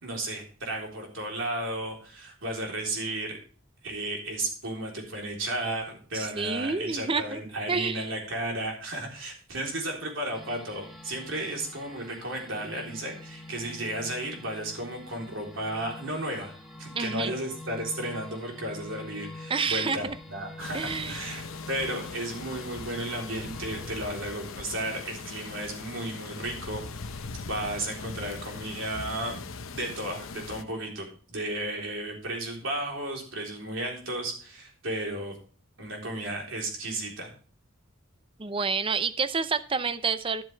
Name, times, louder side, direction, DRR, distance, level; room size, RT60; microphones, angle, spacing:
voice 1, 0.0-3.4 3.8-16.5 16.8-26.8 27.4-29.4 29.7-35.3 35.8-37.3, right 1 dB, 70° right, 0 dB, 3.6 m, -34 dB
voice 2, 6.1-7.4 7.7-8.1 16.9-17.3 19.5-20.2 20.7-21.5 38.4-40.4, right 5 dB, 25° right, 13 dB, 0.6 m, -29 dB
sound 1, 10.3-27.3, left 2 dB, ahead, 1.4 m, -46 dB
sound 2, 20.6-30.6, left 4 dB, 85° left, 0.8 m, -40 dB
12.0 x 7.7 x 3.4 m, 0.41 s
head